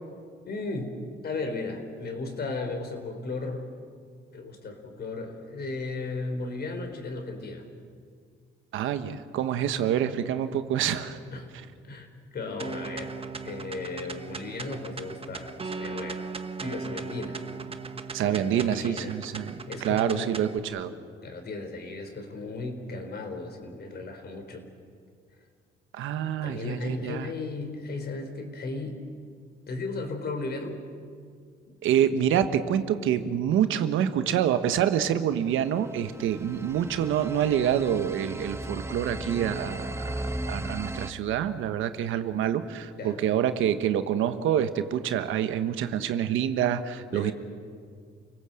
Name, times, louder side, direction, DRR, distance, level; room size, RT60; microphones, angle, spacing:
voice 1, 0.5-1.0 1.2-3.7 4.3-7.6 11.3-11.5 11.8-13.1 13.4-16.3 16.6-17.4 18.2-19.2 19.7-20.3 21.2-24.7 26.4-29.0 29.7-30.8 31.7-31.8 43.0-43.3 47.1-47.3, left 3 dB, 55° left, 5 dB, 4.3 m, -35 dB
voice 2, 8.7-11.2 18.1-19.5 19.8-20.9 25.9-27.3 31.8-47.3, right 9 dB, 85° right, 10 dB, 1.3 m, -27 dB
sound 1, 12.6-20.6, right 4 dB, 30° right, 1.3 m, -38 dB
sound 2, 35.7-41.1, right 1 dB, 15° right, 1.0 m, -36 dB
29.0 x 18.0 x 7.8 m, 2.1 s
cardioid pair, 90°, 20 cm